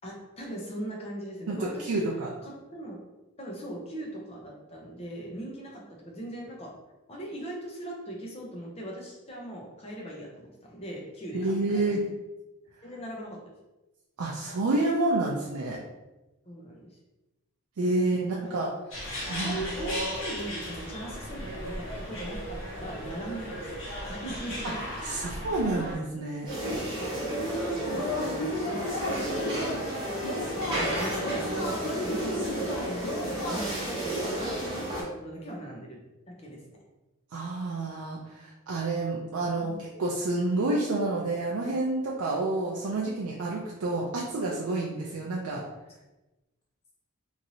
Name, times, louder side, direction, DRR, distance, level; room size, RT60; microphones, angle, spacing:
voice 1, 0.0-2.0 2.4-3.0 3.4-6.7 7.1-11.9 12.8-13.4 16.5-17.0 18.0-18.1 18.3-18.6 19.4-23.7 24.1-24.8 25.2-25.3 25.6-25.9 27.3-29.8 30.5-33.0 33.3-36.0 36.3-36.6 39.6-39.8 42.7-42.8, right 1 dB, 25° left, -2 dB, 0.6 m, -39 dB
voice 2, 1.5-2.3 11.3-12.0 14.2-15.8 17.8-18.7 19.3-19.6 25.0-26.5 37.3-45.6, right 2 dB, 75° right, -3 dB, 0.4 m, -29 dB
sound 1, 18.9-26.0, equal, 55° left, 1.0 m, -36 dB
sound 2, 26.5-35.0, right 1 dB, 20° right, 0.9 m, -32 dB
Yell / Cheering, 27.9-34.0, left 2 dB, 75° left, 0.5 m, -34 dB
3.0 x 2.6 x 2.7 m, 1.0 s
head